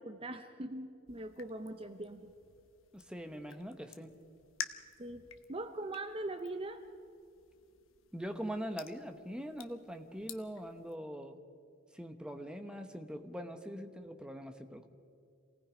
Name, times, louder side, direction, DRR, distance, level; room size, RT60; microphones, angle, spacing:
voice 1, 0.0-2.3 5.0-6.8, right 2 dB, 30° right, 8 dB, 0.7 m, -41 dB
sound 1, 1.1-11.0, left 8 dB, 75° left, 1.0 m, -51 dB
voice 2, 2.9-4.1 8.1-11.4 11.9-14.9, equal, 5° right, 6 dB, 1.1 m, -42 dB
27.5 x 18.5 x 5.1 m, 2.5 s
head